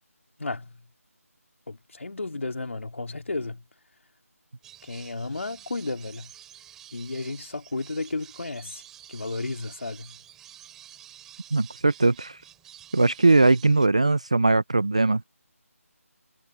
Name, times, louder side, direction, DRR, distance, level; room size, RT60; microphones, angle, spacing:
voice 1, 0.4-0.7 1.7-3.6 4.8-6.3 6.9-8.8 9.1-10.2, left 3 dB, 55° left, 3.4 m, -33 dB
sound 1, 4.6-13.9, right 11 dB, 5° right, 7.6 m, -49 dB
voice 2, 11.5-12.4 12.9-15.2, right 3 dB, 25° right, 0.4 m, -20 dB
figure-of-eight pair, 175°, 8 cm